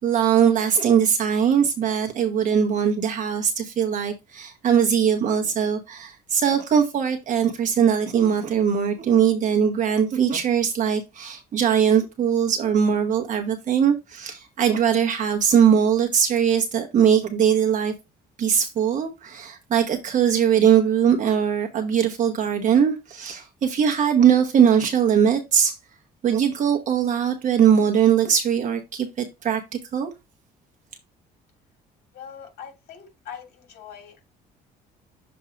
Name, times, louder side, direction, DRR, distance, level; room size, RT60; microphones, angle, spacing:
voice 1, 0.0-17.9 18.4-25.8 26.2-29.6 29.9-30.1, right 8 dB, 50° right, 1.0 m, -21 dB
voice 2, 32.1-34.3, left 8 dB, 70° left, 2.7 m, -42 dB
7.0 x 2.7 x 5.1 m
cardioid pair, 110°, 17 cm